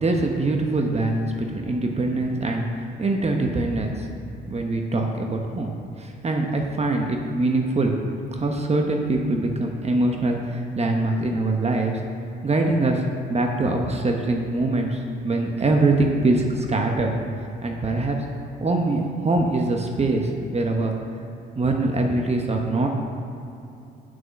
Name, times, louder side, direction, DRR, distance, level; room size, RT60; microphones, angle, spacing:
voice 1, 0.0-4.1 4.5-7.9 8.3-12.0 12.4-17.1 17.6-18.2 18.6-21.0 21.6-22.9, right 2 dB, 30° right, 2 dB, 1.1 m, -23 dB
7.8 x 6.2 x 7.0 m, 2.7 s
supercardioid pair, 70°, 20 cm